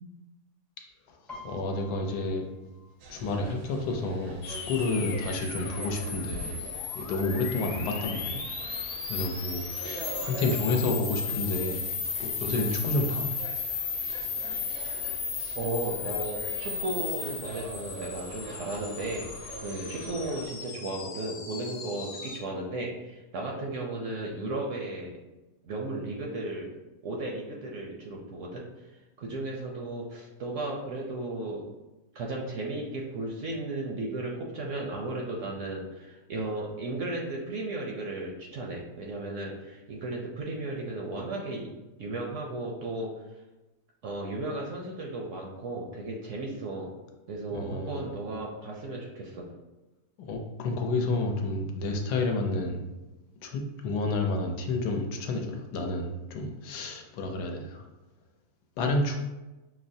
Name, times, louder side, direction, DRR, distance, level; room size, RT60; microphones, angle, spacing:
Piano, 1.3-4.9 5.3-5.7 6.0-6.7 7.3-7.4 7.6-8.6 9.0-9.1, left 1 dB, ahead, 0.3 m, -51 dB
voice 1, 1.4-2.4 3.1-6.6 6.9-11.9 12.2-13.3 14.5-14.6 47.5-48.1 50.3-52.8 53.4-57.8 58.8-59.2, left 2 dB, 80° left, 2 dB, 1.2 m, -30 dB
sound 1, 3.0-20.5, right 3 dB, 85° right, 1.2 m, -45 dB
sound 2, 4.4-22.4, left 6 dB, 65° left, 0.9 m, -35 dB
voice 2, 15.5-19.3 19.6-25.1 25.6-26.7 27.0-28.6 29.2-31.6 32.1-41.7 42.0-43.1 44.0-46.9 47.3-49.4, right 2 dB, 70° right, -1 dB, 0.8 m, -35 dB
6.0 x 2.0 x 2.6 m, 1.1 s
omnidirectional pair, 1.7 m